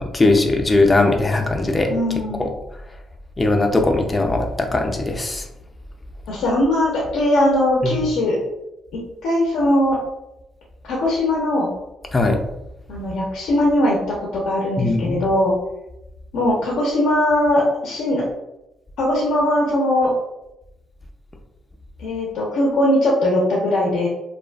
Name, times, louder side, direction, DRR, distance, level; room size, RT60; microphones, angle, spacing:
voice 1, 0.0-1.9 2.4-2.5 3.4-5.5 7.8-8.1 12.1-12.4 14.8-15.3, left 2 dB, 25° left, 3 dB, 0.3 m, -19 dB
voice 2, 1.9-2.5 6.3-8.4 8.9-10.0 10.9-11.7 12.9-15.6 16.3-18.2 19.0-20.1 22.0-24.1, left 1 dB, 85° left, -3 dB, 0.5 m, -20 dB
2.4 x 2.3 x 2.2 m, 0.90 s
cardioid pair, 90°, 0 cm